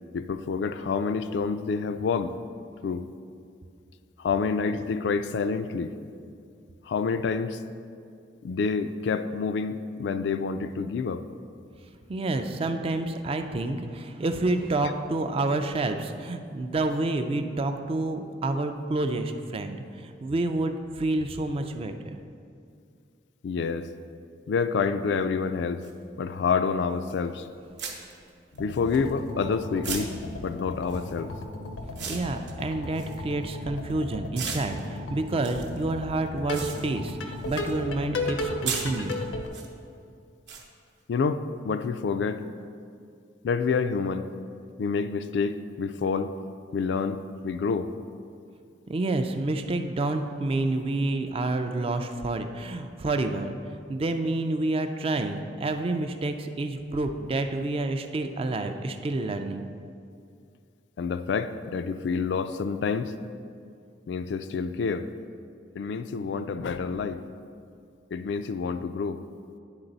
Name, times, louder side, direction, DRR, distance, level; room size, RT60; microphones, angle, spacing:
voice 1, 0.1-2.3 2.8-3.0 4.2-5.9 6.9-7.6 8.4-11.2 14.8-14.9 23.4-23.9 24.5-25.8 26.2-27.5 28.6-30.1 30.4-31.3 41.1-42.4 43.4-44.3 44.8-46.3 46.7-47.9 61.0-63.1 64.1-65.1 65.8-67.2 68.1-69.2, left 5 dB, 65° left, 10 dB, 0.3 m, -28 dB
voice 2, 12.1-22.2 32.1-39.1 48.9-59.7, right 2 dB, 30° right, 7 dB, 0.3 m, -29 dB
sound 1, 25.8-25.9 27.1-27.3 27.8-29.4 29.8-33.9 34.3-37.8 38.1-39.7 40.5-40.6, right 6 dB, 65° right, 0.8 m, -38 dB
sound 2, 28.5-39.5, left 1 dB, 85° left, 0.7 m, -35 dB
9.8 x 4.0 x 3.9 m, 2.3 s
head